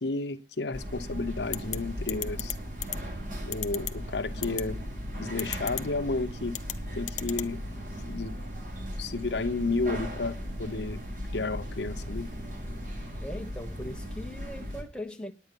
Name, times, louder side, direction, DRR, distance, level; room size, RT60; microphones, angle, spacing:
voice 1, 0.0-2.6 3.5-4.8 5.2-6.6 7.0-7.6 8.1-8.3 9.0-11.0 11.3-12.3, left 3 dB, 80° left, 0.8 m, -32 dB
sound 1, 0.7-14.8, equal, 50° right, 7.6 m, -37 dB
sound 2, 1.5-1.8 2.1-2.5 2.8-3.0 3.5-3.9 4.4-4.6 5.4-5.8 6.5-6.7 7.1-7.5, left 13 dB, 40° left, 0.7 m, -32 dB
voice 2, 13.2-15.3, left 1 dB, 5° left, 1.2 m, -40 dB
9.9 x 9.4 x 6.9 m
head